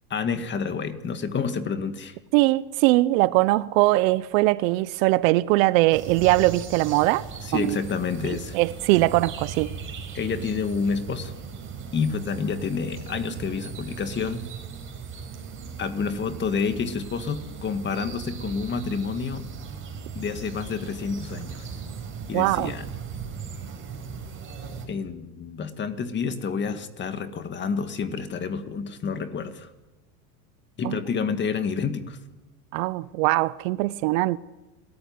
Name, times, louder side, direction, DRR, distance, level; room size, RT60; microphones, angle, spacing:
voice 1, 0.1-2.2 7.4-8.6 10.1-11.3 11.9-14.5 15.8-19.5 20.1-21.7 22.3-22.9 24.9-29.7 30.8-32.2, left 5 dB, 25° left, 2.0 m, -29 dB
voice 2, 2.3-7.3 7.5-7.8 8.2-9.7 22.3-22.7 30.8-31.0 32.7-34.4, right 19 dB, 65° right, 0.9 m, -21 dB
sound 1, 5.9-24.9, right 6 dB, 30° right, 4.7 m, -38 dB
29.5 x 14.0 x 9.5 m
supercardioid pair, 130°, 43 cm